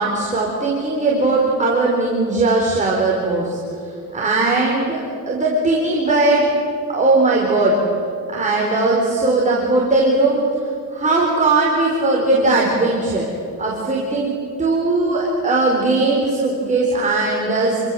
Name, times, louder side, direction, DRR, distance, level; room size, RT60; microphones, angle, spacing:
voice 1, 0.0-3.6 4.1-5.0 5.3-6.5 6.9-7.8 8.3-10.4 10.9-13.3 13.6-14.3 14.6-17.8, right 2 dB, 20° right, -3 dB, 4.5 m, -18 dB
28.5 x 25.5 x 7.8 m, 2.6 s
cardioid pair, 150°, 36 cm